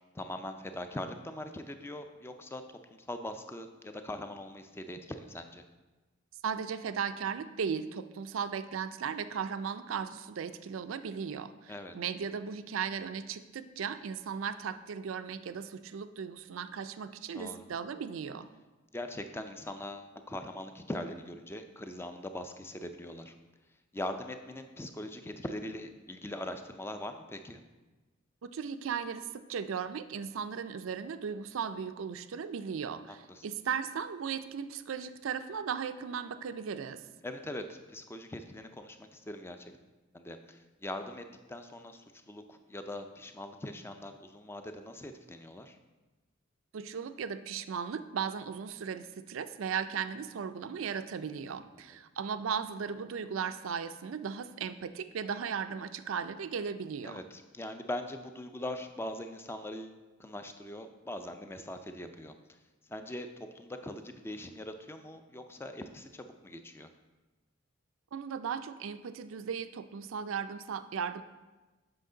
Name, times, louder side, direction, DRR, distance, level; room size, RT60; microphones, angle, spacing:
voice 1, 0.1-2.6 3.0-5.6 11.7-11.9 17.3-17.6 18.9-23.3 23.9-27.6 33.3-33.5 37.2-39.7 40.1-45.8 57.0-62.3 62.9-66.9, left 1 dB, 10° left, 7 dB, 0.4 m, -41 dB
voice 2, 6.4-18.5 28.4-37.0 46.7-57.2 68.1-71.2, right 6 dB, 75° right, 11 dB, 0.4 m, -36 dB
7.6 x 5.8 x 3.8 m, 1.2 s
head